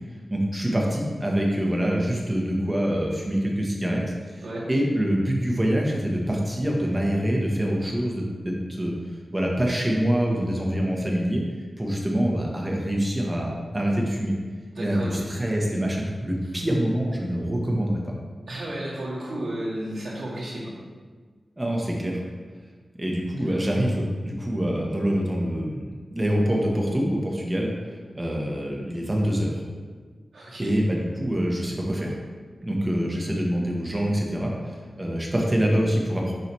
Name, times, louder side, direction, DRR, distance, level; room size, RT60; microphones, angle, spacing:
voice 1, 0.3-4.0 4.3-4.4 4.7-8.9 9.3-11.4 11.8-14.3 14.8-18.1 21.6-22.2 23.0-27.7 28.1-29.6 30.6-32.1 32.6-36.3, equal, 15° right, -2 dB, 0.9 m, -25 dB
voice 2, 14.7-15.3 18.5-20.7 23.4-23.6 30.3-30.8, right 1 dB, 80° right, -6 dB, 1.9 m, -33 dB
6.8 x 4.9 x 3.1 m, 1.5 s
wide cardioid pair, 145°, 0 cm